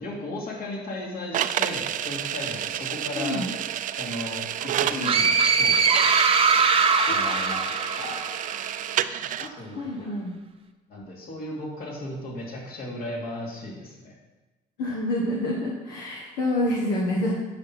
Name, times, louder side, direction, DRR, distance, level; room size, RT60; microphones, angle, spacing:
voice 1, 0.0-3.4 4.0-5.3 5.6-6.1 7.1-7.6 7.9-8.2 9.4-10.1 10.9-14.1, left 1 dB, 60° left, -3 dB, 2.8 m, -35 dB
sound 1, 1.3-9.5, right 11 dB, 50° right, 0.4 m, -30 dB
voice 2, 3.1-3.5 4.9-5.1 7.1-7.2 9.4-10.3 14.8-17.3, left 1 dB, 85° left, -2 dB, 1.4 m, -28 dB
sound 2, 5.0-8.7, right 5 dB, 35° right, 0.8 m, -21 dB
9.6 x 6.5 x 4.4 m, 1.1 s
cardioid pair, 110°, 17 cm